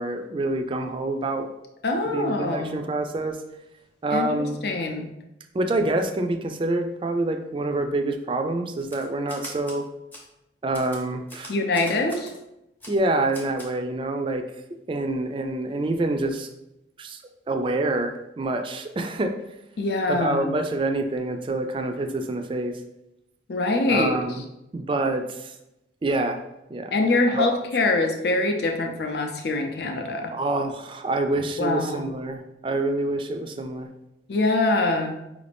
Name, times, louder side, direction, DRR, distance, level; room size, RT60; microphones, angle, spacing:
voice 1, 0.0-1.5 2.1-3.4 4.0-4.6 5.5-9.9 10.6-11.6 12.9-14.4 14.9-16.5 17.0-17.2 17.5-19.3 20.1-22.8 23.9-24.4 24.7-25.6 26.0-26.4 26.7-27.6 30.3-33.9, right 2 dB, 30° right, 6 dB, 0.3 m, -26 dB
voice 2, 1.8-2.8 4.1-5.1 11.5-12.3 19.8-20.5 23.5-24.1 26.9-30.3 31.6-32.1 34.3-35.1, left 2 dB, 60° left, 3 dB, 0.5 m, -24 dB
Typewriter, 8.8-9.8 10.1-10.3 10.7-12.4 12.8-13.0 13.3-13.7, left 1 dB, 10° left, 0.6 m, -42 dB
4.9 x 2.5 x 3.3 m, 0.88 s
head